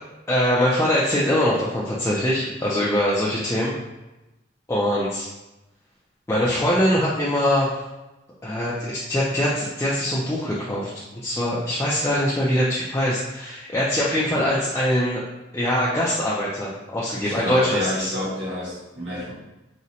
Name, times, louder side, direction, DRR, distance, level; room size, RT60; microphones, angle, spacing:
voice 1, 0.3-3.7 4.7-5.3 6.3-7.7 8.4-10.9 11.2-15.2 15.5-18.1, equal, 15° left, -7 dB, 0.4 m, -23 dB
voice 2, 17.2-19.3, left 1 dB, 80° right, -7 dB, 1.2 m, -28 dB
3.8 x 2.1 x 2.7 m, 1.0 s
head